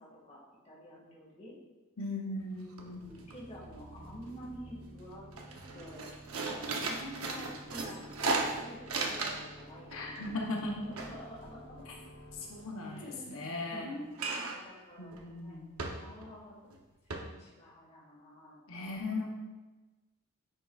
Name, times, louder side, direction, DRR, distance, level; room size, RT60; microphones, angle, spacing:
voice 1, 0.0-1.6 2.8-5.3 5.7-6.1 6.7-10.1 10.8-11.9 12.8-15.6 16.0-16.8 17.0-18.6, equal, 30° left, -5 dB, 1.9 m, -48 dB
voice 2, 2.0-3.0 9.9-10.8 12.5-13.9 15.0-15.8 18.7-19.3, left 2 dB, 65° left, 0 dB, 0.9 m, -38 dB
sound 1, 2.4-2.5 2.8-3.3 3.6-4.4 4.8-5.0 5.3-9.6 9.9-12.3 14.2-14.7 15.1-15.3 15.8-16.3 16.7-16.8 17.1-17.2, right 3 dB, 70° right, 0.9 m, -36 dB
sound 2, 2.8-14.4, right 1 dB, 40° right, 0.8 m, -53 dB
9.7 x 6.1 x 2.4 m, 1.2 s
head